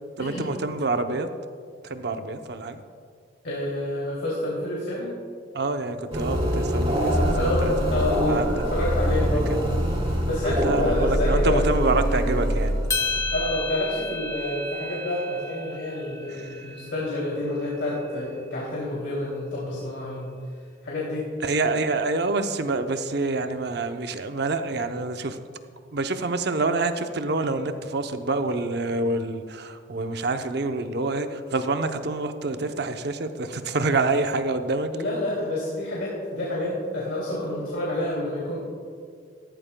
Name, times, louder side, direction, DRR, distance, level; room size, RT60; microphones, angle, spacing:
voice 1, 0.2-1.3 1.8-2.8 5.5-7.9 8.3-8.6 9.3-9.6 10.4-12.7 16.4-16.5 21.4-25.4 25.9-34.9, right 3 dB, 60° right, 7 dB, 0.7 m, -27 dB
voice 2, 3.4-5.1 7.2-8.4 8.7-9.5 10.2-11.7 13.3-20.3 20.8-21.6 34.9-38.6, left 1 dB, 85° left, -6 dB, 2.9 m, -28 dB
sound 1, 6.1-14.0, equal, 30° right, 2.1 m, -24 dB
sound 2, 12.9-17.3, left 3 dB, 15° left, 0.8 m, -32 dB
16.0 x 14.0 x 2.2 m, 2.1 s
head